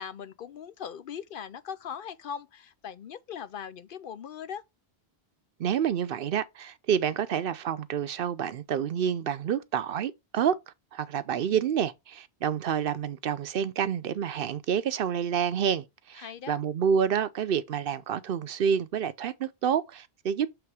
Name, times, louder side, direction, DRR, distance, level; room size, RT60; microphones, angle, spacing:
voice 1, 0.0-4.6 16.2-16.6, left 8 dB, 65° left, 0.7 m, -40 dB
voice 2, 5.6-10.6 10.9-20.5, right 8 dB, 65° right, 0.7 m, -28 dB
6.9 x 3.5 x 4.7 m
omnidirectional pair, 1.1 m